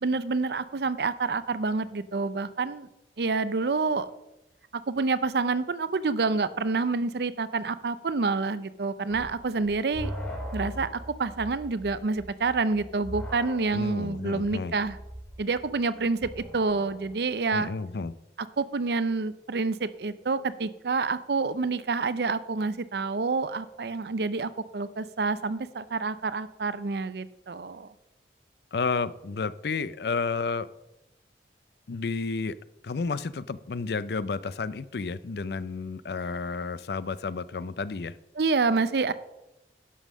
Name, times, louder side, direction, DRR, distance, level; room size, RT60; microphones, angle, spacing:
voice 1, 0.0-2.9 3.2-4.1 4.9-10.1 10.5-10.9 11.2-15.0 15.4-17.7 18.6-27.9 38.4-39.1, right 4 dB, 70° right, 15 dB, 0.5 m, -28 dB
sound 1, 9.1-17.2, equal, 10° left, 2.1 m, -40 dB
voice 2, 13.7-14.7 17.5-18.1 28.7-30.7 31.9-32.6 32.8-38.1, left 4 dB, 70° left, 16 dB, 0.5 m, -31 dB
11.0 x 5.5 x 6.3 m, 0.93 s
head